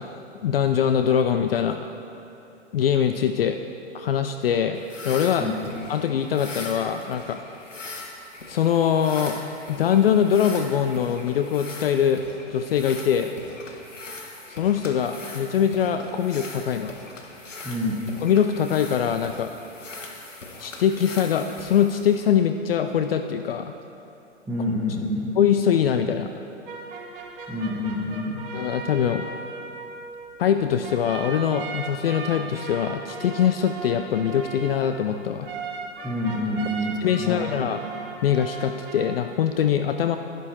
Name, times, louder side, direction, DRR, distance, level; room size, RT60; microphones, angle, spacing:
voice 1, 0.0-1.8 2.7-3.6 3.9-5.5 5.9-7.4 8.5-9.4 9.7-12.2 12.5-13.3 14.5-16.9 18.2-19.5 20.6-23.7 25.4-26.3 28.5-29.2 30.4-35.5 37.0-37.8 38.2-40.2, left 8 dB, 50° left, 8 dB, 0.6 m, -23 dB
sound 1, 4.7-22.3, left 3 dB, 90° left, 1.5 m, -40 dB
voice 2, 5.4-5.7 17.6-18.1 24.5-25.4 27.5-28.5 36.0-37.5, left 1 dB, 5° right, -7 dB, 1.0 m, -28 dB
sound 2, 26.7-39.2, right 4 dB, 45° right, 1.4 m, -37 dB
11.0 x 11.0 x 4.4 m, 2.9 s
hypercardioid pair, 125°, 36 cm